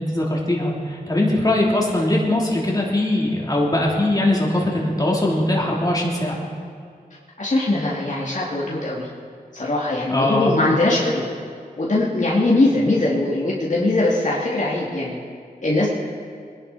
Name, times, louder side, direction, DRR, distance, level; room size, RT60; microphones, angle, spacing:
voice 1, 0.0-6.4 10.1-10.5, left 1 dB, 25° left, -3 dB, 3.3 m, -21 dB
voice 2, 7.4-9.1 9.5-11.2 11.8-15.2 15.6-15.9, left 2 dB, 50° left, -5 dB, 2.4 m, -21 dB
22.0 x 11.0 x 4.2 m, 2.3 s
wide cardioid pair, 60°, 17 cm